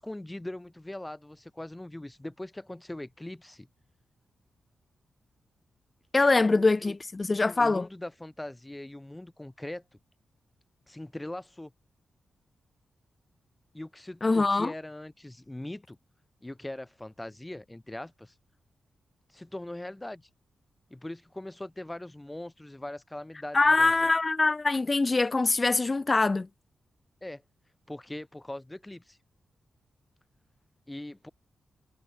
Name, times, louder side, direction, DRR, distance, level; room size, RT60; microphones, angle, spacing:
voice 1, 0.0-3.7 6.4-7.0 7.6-9.8 10.9-11.7 13.7-16.0 16.4-18.3 19.3-20.3 20.9-24.1 27.2-27.4 27.9-29.2 30.9-31.3, left 1 dB, 15° left, 3.4 m, -41 dB
voice 2, 6.1-7.9 14.2-14.7 23.5-26.5, left 3 dB, 35° left, 0.4 m, -23 dB
cardioid pair, 65°, 0 cm